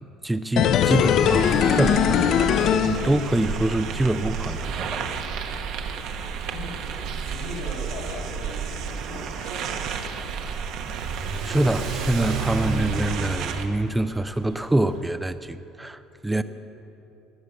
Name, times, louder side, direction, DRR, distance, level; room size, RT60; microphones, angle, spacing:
voice 1, 0.0-5.1 11.0-11.1 11.4-16.4, right 1 dB, 10° right, 11 dB, 0.4 m, -25 dB
sound 1, 0.6-3.7 4.0-4.1, left 9 dB, 55° left, 0.6 m, -21 dB
sound 2, 1.2-13.7, right 6 dB, 65° right, 1.2 m, -32 dB
voice 2, 6.2-9.9 16.3-16.4, left 2 dB, 80° left, 1 dB, 4.0 m, -40 dB
Car / Accelerating revving vroom, 8.8-15.0, right 4 dB, 85° right, 4.3 m, -33 dB
19.5 x 7.4 x 8.1 m, 2.9 s
cardioid pair, 125°, 0 cm